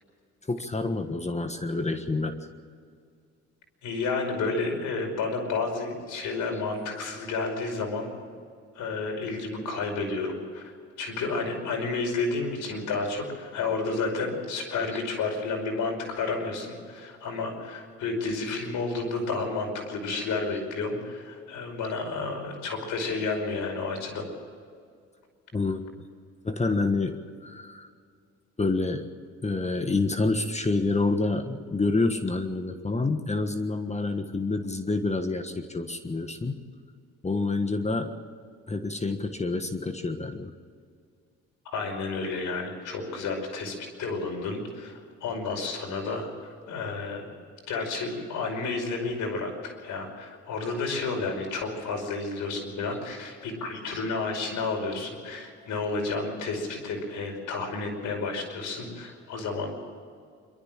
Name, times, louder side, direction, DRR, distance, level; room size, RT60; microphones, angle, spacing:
voice 1, 0.5-2.5 6.5-6.6 14.9-15.0 25.5-25.9 26.4-27.9 28.6-29.1 29.4-36.6 37.2-38.1 38.7-40.5, left 3 dB, 20° left, 8 dB, 1.5 m, -28 dB
voice 2, 3.8-8.1 8.7-10.7 11.0-24.2 41.7-46.3 46.7-47.2 47.7-59.7, left 3 dB, 80° left, 2 dB, 5.4 m, -31 dB
26.5 x 13.0 x 7.5 m, 2.2 s
cardioid pair, 90°, 30 cm